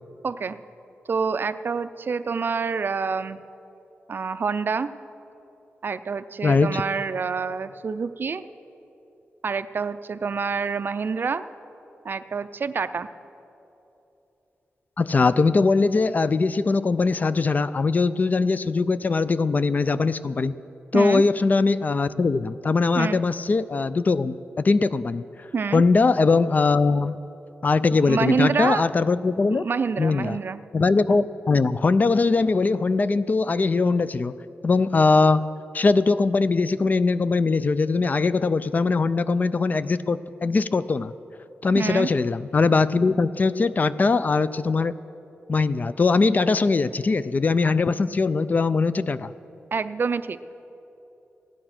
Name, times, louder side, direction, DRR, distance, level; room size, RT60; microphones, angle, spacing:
voice 1, 0.2-0.6 1.1-3.4 4.1-4.9 5.8-8.4 9.4-11.4 12.0-13.1 20.9-21.2 23.0-23.2 25.5-25.8 27.9-28.9 29.5-30.6 41.7-42.1 49.7-50.4, right 5 dB, 50° right, 11 dB, 0.4 m, -27 dB
voice 2, 6.4-6.8 15.0-20.5 20.9-25.2 25.7-27.2 27.6-29.6 30.0-30.4 30.7-34.3 34.6-35.4 35.7-41.1 41.6-44.9 45.5-49.3, left 4 dB, 40° left, 15 dB, 0.3 m, -21 dB
15.5 x 10.0 x 5.9 m, 3.0 s
wide cardioid pair, 100°, 5 cm